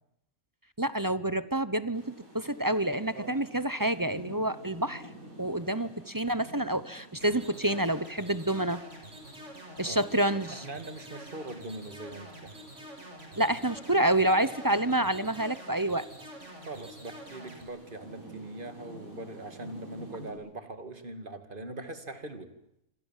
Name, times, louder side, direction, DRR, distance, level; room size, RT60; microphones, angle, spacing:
voice 1, 0.8-5.0 5.4-8.8 9.8-10.6 13.4-16.1, right 1 dB, 15° right, 15 dB, 0.9 m, -28 dB
Rain, 1.9-20.3, equal, 80° right, 8.7 m, -51 dB
sound 1, 7.2-17.6, right 1 dB, 55° right, 6.9 m, -47 dB
voice 2, 10.5-12.5 16.7-22.5, right 2 dB, 35° right, 9 dB, 2.6 m, -41 dB
26.5 x 26.5 x 7.5 m, 0.81 s
omnidirectional pair, 1.4 m